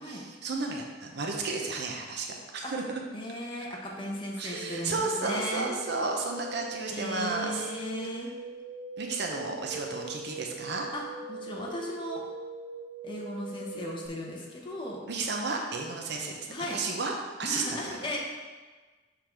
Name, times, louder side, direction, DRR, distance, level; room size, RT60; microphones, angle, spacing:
voice 1, 0.0-3.0 4.4-7.6 9.0-10.9 15.1-17.1 17.4-18.0, right 3 dB, 65° right, 1 dB, 0.7 m, -33 dB
voice 2, 3.1-5.7 6.9-8.3 10.9-12.2 13.0-15.0 16.5-16.8 17.4-18.2, left 1 dB, 25° left, -2 dB, 1.0 m, -36 dB
sound 1, 4.5-14.1, right 3 dB, 45° right, 0.3 m, -42 dB
6.6 x 3.8 x 4.5 m, 1.3 s
head